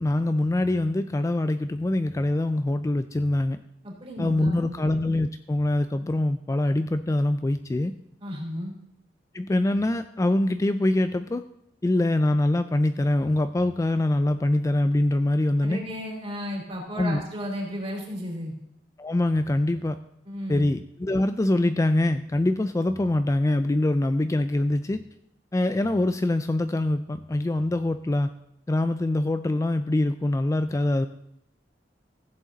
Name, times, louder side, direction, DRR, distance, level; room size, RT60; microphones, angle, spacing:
voice 1, 0.0-3.6 4.2-7.9 9.3-11.4 11.8-15.8 17.0-17.2 19.0-20.0 20.5-25.0 25.5-28.3 28.7-31.1, left 1 dB, 20° left, 10 dB, 0.3 m, -24 dB
voice 2, 3.8-4.8 8.2-8.7 15.6-18.5 20.2-20.6, equal, 35° right, 0 dB, 3.3 m, -33 dB
15.0 x 7.5 x 4.0 m, 0.79 s
head